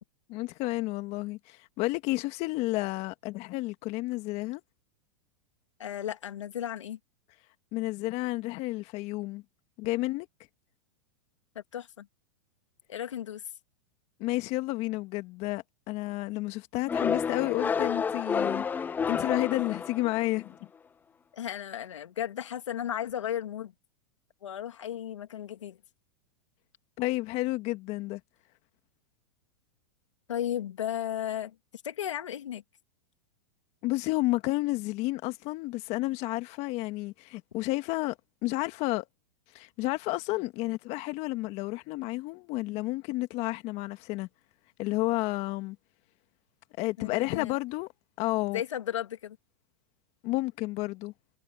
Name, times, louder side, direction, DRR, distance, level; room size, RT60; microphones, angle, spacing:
voice 1, 0.3-4.6 7.7-9.4 9.8-10.3 14.2-20.6 27.0-28.2 33.8-38.2 38.4-39.0 39.5-44.3 44.8-45.8 46.8-47.9 48.2-48.6 50.2-51.1, left 20 dB, 45° left, 1.7 m, -31 dB
voice 2, 5.8-7.0 11.5-12.1 12.9-13.4 21.3-23.7 24.4-25.8 30.3-31.6 31.8-32.6 47.0-47.5 48.5-49.4, left 10 dB, 85° left, 2.5 m, -34 dB
sound 1, 16.9-20.4, left 6 dB, 10° left, 0.3 m, -30 dB
hypercardioid pair, 120°, 15 cm